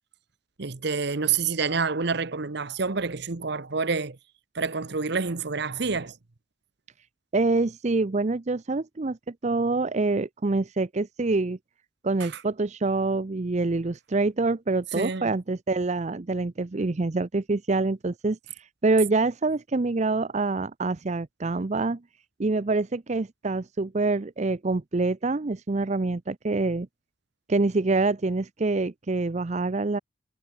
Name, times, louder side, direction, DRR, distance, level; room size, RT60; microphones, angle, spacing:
voice 1, 0.6-4.2 4.5-6.1 14.9-15.3, right 5 dB, 60° right, 1.0 m, -28 dB
voice 2, 7.3-11.6 12.0-22.0 22.4-26.9 27.5-30.0, right 3 dB, 35° right, 0.5 m, -26 dB
head